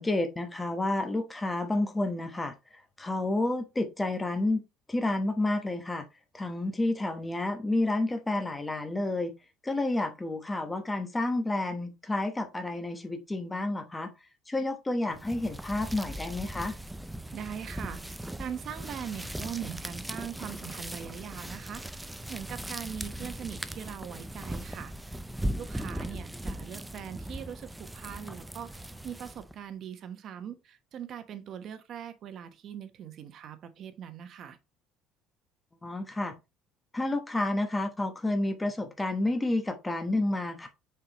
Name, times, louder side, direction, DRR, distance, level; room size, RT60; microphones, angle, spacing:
voice 1, 0.0-2.5 3.0-4.6 4.9-6.0 6.3-9.3 9.6-14.1 14.5-16.7 26.0-26.1 35.8-36.3 36.9-40.7, left 2 dB, 10° left, 1.0 m, -30 dB
sound 1, 15.1-29.6, right 1 dB, 5° right, 0.4 m, -39 dB
voice 2, 17.3-18.0 18.4-24.9 25.6-34.6, right 8 dB, 45° right, 1.1 m, -41 dB
7.0 x 4.5 x 3.0 m
cardioid pair, 130°, 0 cm